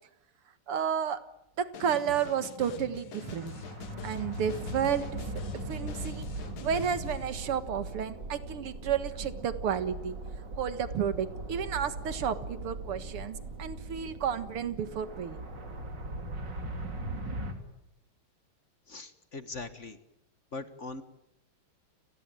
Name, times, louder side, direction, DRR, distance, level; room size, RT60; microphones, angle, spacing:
voice 1, 0.7-1.2 1.6-3.5 4.0-10.2 10.6-15.4, right 8 dB, 85° right, 12 dB, 2.5 m, -32 dB
sound 1, 1.7-7.3, left 8 dB, 75° left, 2.1 m, -45 dB
sound 2, 3.2-17.5, right 2 dB, 55° right, 3.7 m, -39 dB
voice 2, 18.9-20.0 20.5-21.0, left 3 dB, 35° left, 11 dB, 1.6 m, -41 dB
30.0 x 19.5 x 9.1 m, 0.87 s
omnidirectional pair, 2.4 m